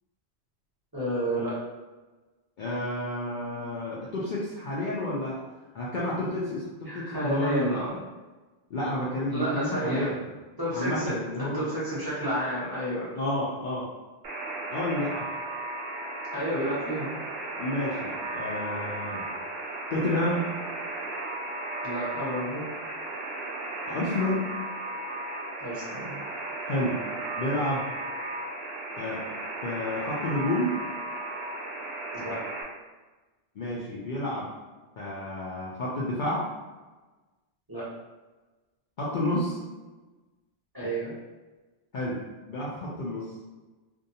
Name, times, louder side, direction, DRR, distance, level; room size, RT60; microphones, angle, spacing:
voice 1, 0.9-1.6 6.9-8.0 9.3-10.1 10.6-13.1 16.3-17.2 21.8-22.6 25.6-26.2 32.1-32.4 37.7-37.8 40.7-41.1, right 1 dB, 20° right, -10 dB, 0.8 m, -30 dB
voice 2, 2.6-5.4 5.7-7.8 8.7-10.3 10.7-11.7 13.1-13.9 14.7-15.2 17.6-19.2 19.9-20.5 23.8-24.4 26.6-27.0 27.4-27.9 29.0-29.2 29.6-30.7 33.6-34.5 35.0-36.4 39.0-39.6 41.9-42.2 42.5-43.2, left 1 dB, 60° left, -7 dB, 0.6 m, -30 dB
Alarm, 14.2-32.6, right 2 dB, 65° right, 0.8 m, -35 dB
2.6 x 2.2 x 2.7 m, 1.2 s
omnidirectional pair, 1.1 m